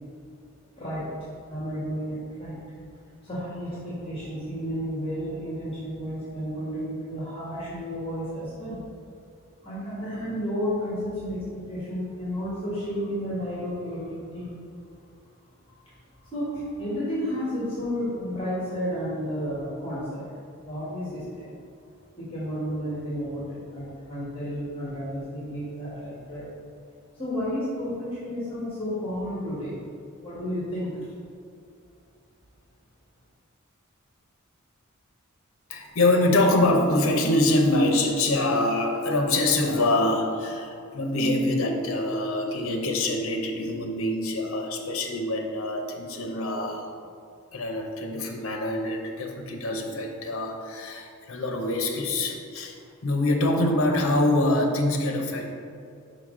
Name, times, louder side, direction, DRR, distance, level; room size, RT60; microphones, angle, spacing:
voice 1, 0.7-1.1 1.5-2.6 3.2-8.8 9.6-14.5 15.7-15.9 16.2-20.3 20.6-21.6 22.2-26.5 27.1-29.8 30.2-31.0, equal, 25° left, -9 dB, 1.4 m, -32 dB
voice 2, 35.7-46.9 47.5-52.8 53.0-55.5, left 2 dB, 65° left, 3 dB, 0.7 m, -25 dB
5.8 x 5.2 x 3.7 m, 2.4 s
head